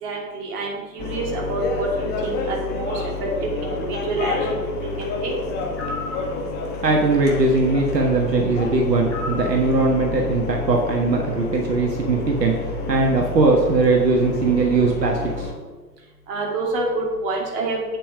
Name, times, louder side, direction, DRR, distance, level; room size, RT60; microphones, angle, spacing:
voice 1, 0.0-3.3 3.6-5.3 16.3-18.0, right 2 dB, 35° right, -2 dB, 2.7 m, -27 dB
sound 1, 1.0-15.5, left 3 dB, 20° left, 1.3 m, -29 dB
sound 2, 5.8-6.2 9.1-9.5, left 2 dB, ahead, 0.4 m, -31 dB
voice 2, 6.8-12.5 12.9-15.5, right 3 dB, 75° right, 1 dB, 1.5 m, -20 dB
8.4 x 7.5 x 5.1 m, 1.3 s
figure-of-eight pair, 110°, 50 cm